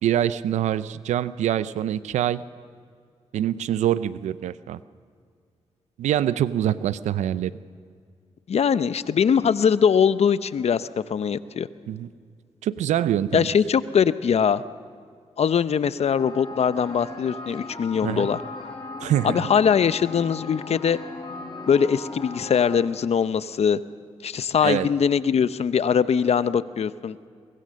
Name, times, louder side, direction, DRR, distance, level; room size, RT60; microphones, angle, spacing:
voice 1, 0.0-2.4 3.3-4.8 6.0-7.5 11.9-12.1 12.6-13.5 18.0-18.3 19.0-19.5 24.6-24.9, right 11 dB, 90° right, 16 dB, 0.6 m, -24 dB
voice 2, 8.5-11.7 13.3-14.6 15.4-18.4 19.2-21.0 21.7-23.8 24.2-27.2, left 7 dB, 65° left, 14 dB, 0.8 m, -21 dB
sound 1, 16.2-22.8, left 3 dB, 40° left, 6.1 m, -38 dB
23.0 x 22.0 x 6.5 m, 2.1 s
supercardioid pair, 50°, 12 cm